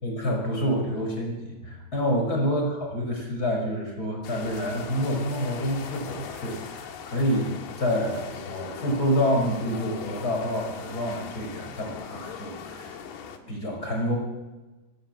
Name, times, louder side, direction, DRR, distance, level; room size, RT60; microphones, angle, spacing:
voice 1, 0.0-12.9 13.4-14.2, equal, 25° left, 1 dB, 6.3 m, -28 dB
sound 1, 4.2-13.4, left 7 dB, 80° left, 3.7 m, -40 dB
26.0 x 16.5 x 8.1 m, 1.2 s
omnidirectional pair, 4.4 m